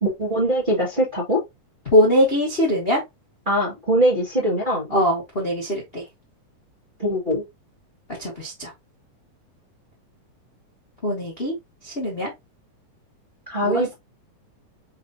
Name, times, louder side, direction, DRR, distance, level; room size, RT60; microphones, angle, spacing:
voice 1, 0.0-1.4 3.5-4.9 7.0-7.4 13.5-13.9, equal, 30° right, 0.9 m, -22 dB
voice 2, 1.9-3.0 4.9-6.0 8.2-8.7 11.0-11.5 11.8-12.3 13.6-13.9, equal, 60° left, 0.6 m, -21 dB
4.9 x 4.0 x 2.7 m
omnidirectional pair, 3.8 m